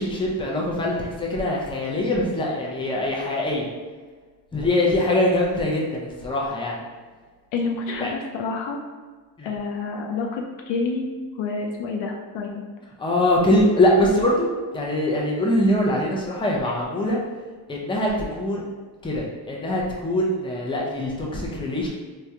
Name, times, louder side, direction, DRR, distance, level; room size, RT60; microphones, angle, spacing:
voice 1, 0.0-3.7 4.5-6.8 8.0-8.1 9.4-9.5 13.0-14.5 14.7-17.2 17.7-18.7 19.0-21.9, left 1 dB, 10° left, -3 dB, 0.6 m, -23 dB
voice 2, 7.5-8.8 9.4-11.0 11.4-12.6, left 4 dB, 75° left, 1 dB, 0.5 m, -28 dB
3.4 x 2.2 x 2.8 m, 1.4 s
cardioid pair, 75°, 46 cm